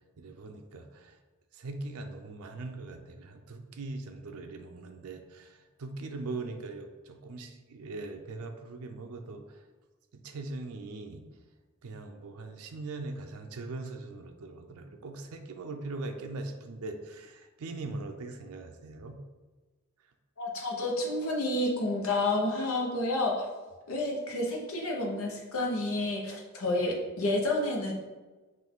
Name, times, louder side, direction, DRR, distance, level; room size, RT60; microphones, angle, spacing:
voice 1, 0.2-1.2 1.5-9.6 10.1-11.2 11.8-19.2, right 3 dB, 85° right, 5 dB, 0.5 m, -41 dB
voice 2, 20.4-23.5 23.9-27.9, left 2 dB, 70° left, -1 dB, 0.9 m, -30 dB
5.8 x 2.5 x 3.6 m, 1.2 s
head